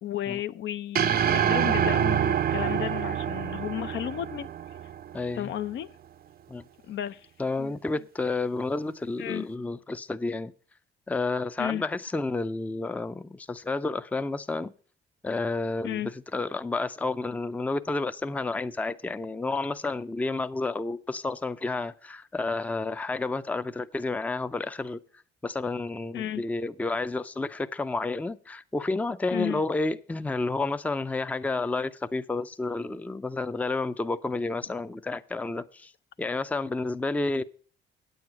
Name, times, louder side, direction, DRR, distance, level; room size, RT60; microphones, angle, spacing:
voice 1, 0.0-4.5 5.4-5.9 6.8-7.3 7.6-7.7 9.2-9.5 11.6-11.8 15.8-16.1 26.1-26.4 29.3-29.6, left 11 dB, 70° left, 0.6 m, -33 dB
sound 1, 1.0-5.3, right 9 dB, 50° right, 0.5 m, -26 dB
voice 2, 5.1-5.5 6.5-6.6 7.4-10.5 11.1-14.7 15.2-16.0 16.3-25.0 25.4-35.9 36.2-37.4, left 3 dB, 5° left, 0.4 m, -30 dB
8.8 x 7.9 x 5.9 m
cardioid pair, 90°, 20 cm